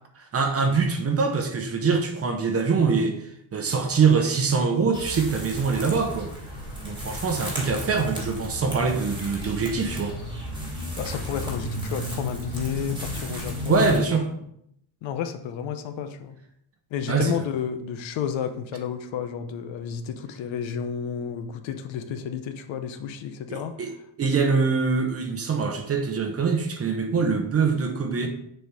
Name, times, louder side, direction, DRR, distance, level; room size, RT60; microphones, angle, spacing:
voice 1, 0.2-6.3 6.8-10.2 13.7-14.3 17.1-17.3 23.5-23.9 24.2-28.3, right 5 dB, 30° right, 5 dB, 0.8 m, -24 dB
sound 1, 4.9-14.0, left 1 dB, 10° right, 1.4 m, -33 dB
voice 2, 11.0-13.9 15.0-16.4 16.9-23.8, left 8 dB, 65° left, 9 dB, 0.8 m, -31 dB
6.7 x 4.2 x 4.7 m, 0.73 s
cardioid pair, 175°, 49 cm